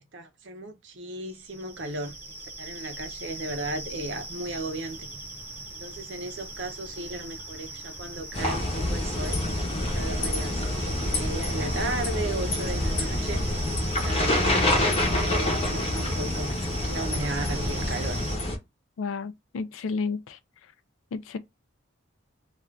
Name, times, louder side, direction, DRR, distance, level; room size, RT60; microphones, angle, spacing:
voice 1, 0.0-2.2 2.6-5.1 5.7-9.4 9.8-13.4 13.9-16.6 16.8-18.2, right 2 dB, 65° right, 0.6 m, -35 dB
sound 1, 1.3-18.4, right 2 dB, 10° right, 1.0 m, -39 dB
sound 2, 8.3-18.6, left 1 dB, 30° left, 0.7 m, -27 dB
voice 2, 19.0-20.4 21.1-21.4, left 4 dB, 85° left, 0.4 m, -31 dB
2.5 x 2.4 x 3.1 m
head